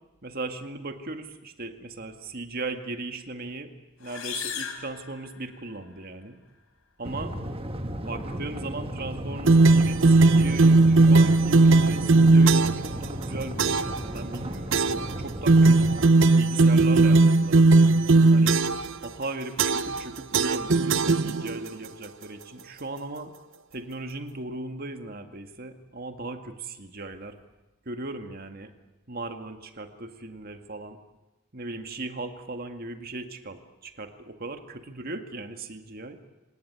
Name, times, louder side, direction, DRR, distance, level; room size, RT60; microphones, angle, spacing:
voice 1, 0.2-3.7 4.0-6.4 7.0-7.4 8.0-14.8 15.2-17.8 18.3-18.6 19.0-23.3 23.7-27.4 27.9-28.7 29.1-31.0 31.5-36.2, right 2 dB, 45° right, 7 dB, 1.9 m, -37 dB
sound 1, 4.0-5.8, left 8 dB, 90° left, 4.1 m, -37 dB
sound 2, 7.0-16.1, right 1 dB, 25° right, 1.4 m, -35 dB
sound 3, 9.5-12.9 13.6-14.0 14.7-15.1 15.5-18.9 19.6-20.0 20.3-21.7, right 3 dB, 60° right, 0.9 m, -18 dB
26.5 x 19.0 x 9.6 m, 1.0 s
head